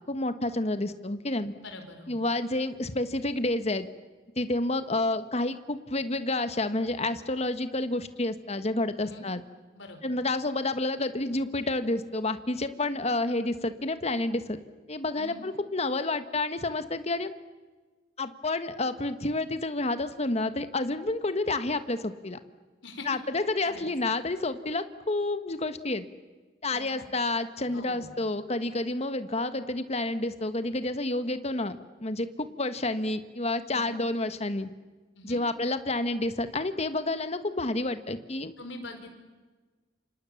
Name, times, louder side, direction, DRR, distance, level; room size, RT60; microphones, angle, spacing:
voice 1, 0.1-1.5 2.1-3.9 4.4-9.4 10.0-14.6 14.9-17.3 18.2-22.4 23.0-26.0 26.6-34.7 35.3-38.5, left 2 dB, 35° left, 11 dB, 1.4 m, -29 dB
voice 2, 1.6-2.2 9.0-9.3 9.7-10.0 15.2-15.4 22.8-23.1 23.6-23.8 26.7-27.1 27.7-28.2 33.7-34.0 35.1-35.4 38.6-39.1, left 2 dB, 80° left, 6 dB, 4.8 m, -43 dB
29.0 x 26.5 x 7.2 m, 1.3 s
head